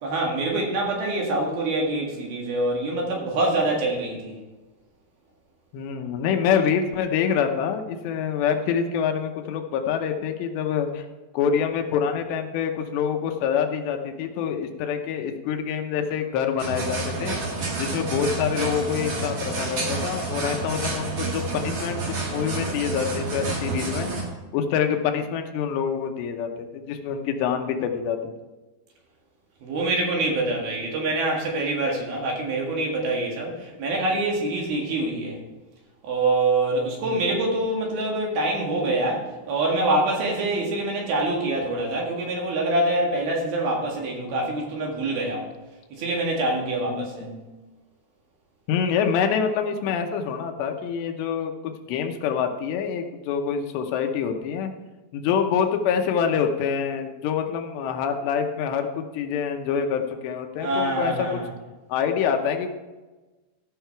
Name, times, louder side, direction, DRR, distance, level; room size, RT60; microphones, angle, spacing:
voice 1, 0.0-4.3 29.6-35.4 36.0-45.5 45.9-47.3 60.6-61.5, right 2 dB, 65° right, -1 dB, 3.6 m, -25 dB
voice 2, 5.7-11.1 11.3-17.4 17.8-24.1 24.5-28.3 37.0-37.3 46.9-47.5 48.7-54.7 55.1-61.4 61.9-62.7, left 7 dB, 85° left, 5 dB, 3.1 m, -26 dB
sound 1, 16.6-24.2, right 3 dB, 45° right, 2.2 m, -29 dB
14.5 x 5.6 x 4.5 m, 1.2 s
omnidirectional pair, 4.9 m